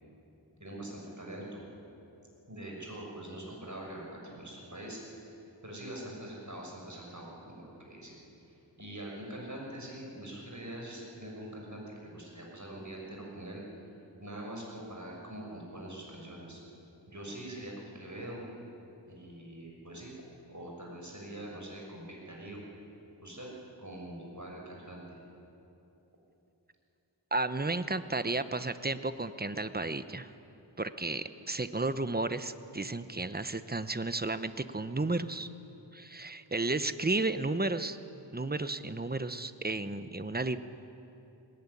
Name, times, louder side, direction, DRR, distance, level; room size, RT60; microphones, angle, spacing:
voice 1, 0.6-1.6 2.5-5.0 5.6-8.1 8.8-13.6 14.2-16.6 17.1-18.4 19.1-20.1 20.5-22.6 23.2-23.5 23.8-25.2, right 1 dB, 40° right, -2 dB, 6.5 m, -43 dB
voice 2, 27.3-30.3 30.8-35.5 35.9-38.0 38.3-40.6, right 2 dB, 20° right, 11 dB, 0.9 m, -33 dB
20.0 x 19.0 x 9.9 m, 2.9 s
wide cardioid pair, 50°, 45 cm